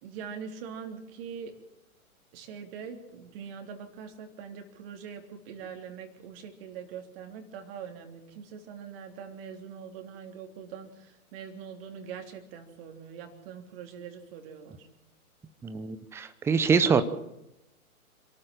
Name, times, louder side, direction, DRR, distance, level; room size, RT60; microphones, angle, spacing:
voice 1, 0.0-1.6 2.3-14.9, right 7 dB, 40° right, 4 dB, 3.4 m, -43 dB
voice 2, 15.6-17.0, right 5 dB, 5° right, 12 dB, 0.7 m, -24 dB
27.0 x 13.5 x 7.6 m, 0.87 s
figure-of-eight pair, 110°, 44 cm